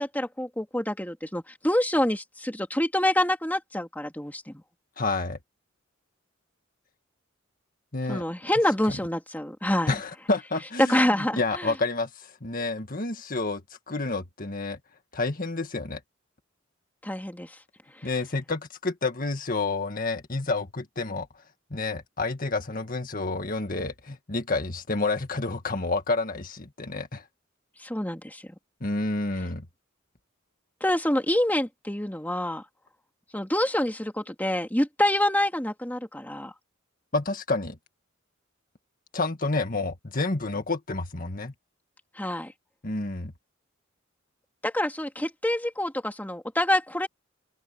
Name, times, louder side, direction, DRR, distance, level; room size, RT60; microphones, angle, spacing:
voice 1, 0.0-4.6 8.1-9.9 10.9-11.7 17.0-17.5 27.8-28.4 30.8-32.6 33.3-36.5 42.2-42.5 44.6-47.1, left 1 dB, 10° left, 2.6 m, -27 dB
voice 2, 5.0-5.4 7.9-8.2 8.9-9.0 9.9-11.0 11.4-13.6 13.9-14.8 15.1-16.0 18.0-21.3 21.7-27.2 28.8-29.7 37.1-37.8 39.1-41.5 42.8-43.3, left 3 dB, 45° left, 1.9 m, -29 dB
open air
head